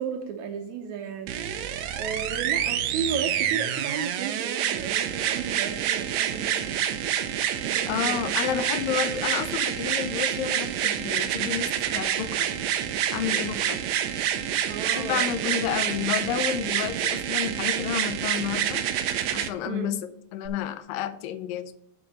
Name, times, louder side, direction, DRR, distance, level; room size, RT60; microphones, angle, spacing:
voice 1, 0.0-1.3 1.9-6.8 7.6-8.2 14.7-15.7 19.7-19.9, right 7 dB, 75° right, 5 dB, 1.8 m, -34 dB
sound 1, 1.3-19.5 20.5-20.6, right 10 dB, 90° right, 1.5 m, -27 dB
voice 2, 7.9-12.5 13.1-13.8 15.0-18.8 19.3-21.7, left 9 dB, 85° left, 11 dB, 2.3 m, -30 dB
7.4 x 5.3 x 6.5 m, 0.73 s
omnidirectional pair, 4.0 m